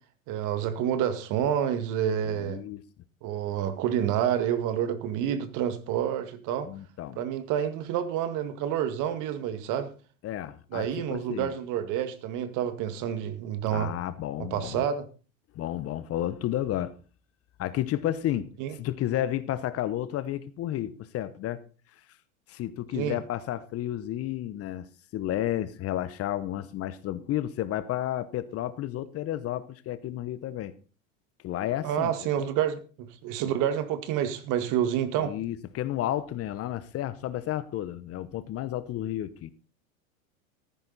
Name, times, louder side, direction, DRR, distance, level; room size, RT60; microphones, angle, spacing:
voice 1, 0.3-2.6 3.2-6.7 7.2-9.9 10.7-13.9 14.5-15.1 18.6-18.8 22.9-23.2 31.8-35.3, right 9 dB, 45° right, 10 dB, 2.1 m, -28 dB
voice 2, 2.2-2.8 6.6-7.2 10.2-11.5 13.7-14.8 15.5-17.0 17.6-18.5 18.8-21.6 22.5-24.9 25.1-30.7 31.4-32.5 35.2-39.5, left 12 dB, 35° left, 15 dB, 1.0 m, -32 dB
14.5 x 11.0 x 4.1 m, 0.36 s
hypercardioid pair, 100°, 41 cm